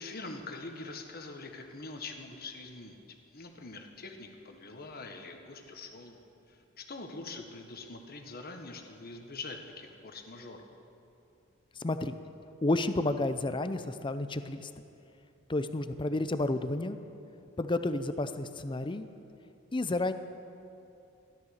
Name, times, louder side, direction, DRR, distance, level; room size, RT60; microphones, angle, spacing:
voice 1, 0.0-3.0 3.3-6.2 6.5-10.7, left 3 dB, 50° left, 4 dB, 1.3 m, -44 dB
voice 2, 11.8-12.1 12.6-14.7 15.5-17.0 17.6-19.1 19.7-20.1, left 2 dB, 25° left, 10 dB, 0.6 m, -31 dB
14.0 x 12.5 x 6.6 m, 2.7 s
head